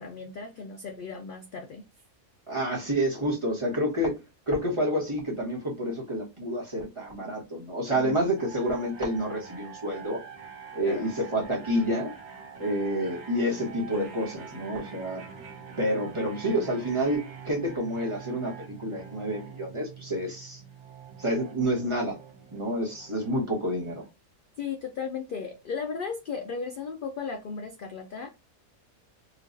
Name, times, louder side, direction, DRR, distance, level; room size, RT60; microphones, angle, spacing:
voice 1, 0.0-1.8 7.9-8.3 10.8-11.2 24.6-28.3, left 5 dB, 65° left, 0.5 m, -35 dB
voice 2, 2.5-4.1 4.5-10.2 10.7-12.1 12.6-15.2 15.8-20.6 21.2-22.2 22.5-24.0, equal, 25° right, 1.1 m, -29 dB
sound 1, 8.4-24.1, right 6 dB, 60° right, 1.1 m, -45 dB
4.4 x 2.3 x 2.6 m
omnidirectional pair, 1.5 m